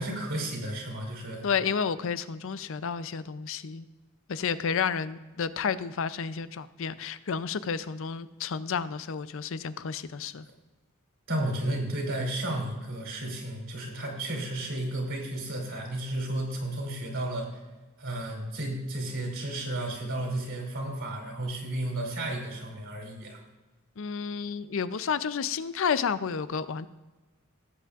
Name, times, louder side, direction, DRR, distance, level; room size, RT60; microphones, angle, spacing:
voice 1, 0.0-1.5 11.3-17.6 18.0-23.4, right 1 dB, 65° right, 0 dB, 3.0 m, -33 dB
voice 2, 1.4-3.9 4.3-10.5 24.0-26.9, left 6 dB, 65° left, 14 dB, 0.5 m, -31 dB
17.5 x 8.3 x 2.4 m, 1.2 s
head